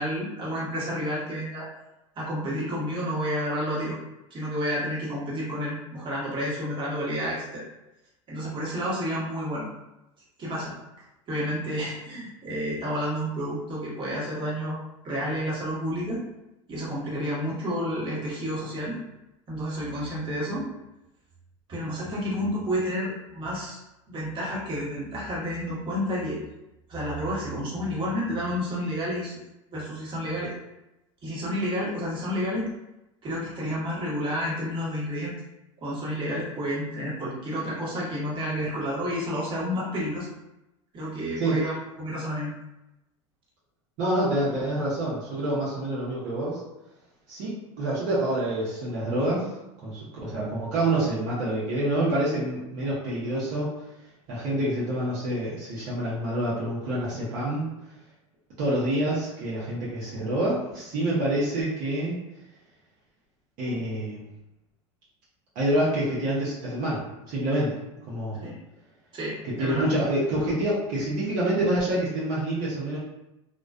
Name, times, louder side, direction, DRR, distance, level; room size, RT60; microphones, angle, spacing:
voice 1, 0.0-1.7 2.2-4.0 4.3-7.6 8.3-9.7 10.4-10.7 11.3-14.8 15.0-16.2 16.7-19.0 19.5-20.7 21.7-23.8 24.1-26.4 26.9-29.4 29.7-30.5 31.2-32.7 33.2-35.3 35.8-40.3 40.9-42.5 68.4-68.6 69.1-69.8, equal, 30° right, -6 dB, 1.1 m, -30 dB
voice 2, 44.0-46.6 47.3-49.5 49.8-53.7 54.3-57.6 58.6-62.2 63.6-64.2 65.5-67.0 67.3-67.7 68.1-68.4 69.6-73.0, right 1 dB, 55° right, -8 dB, 0.8 m, -27 dB
2.4 x 2.2 x 2.4 m, 0.93 s
hypercardioid pair, 95°, 16 cm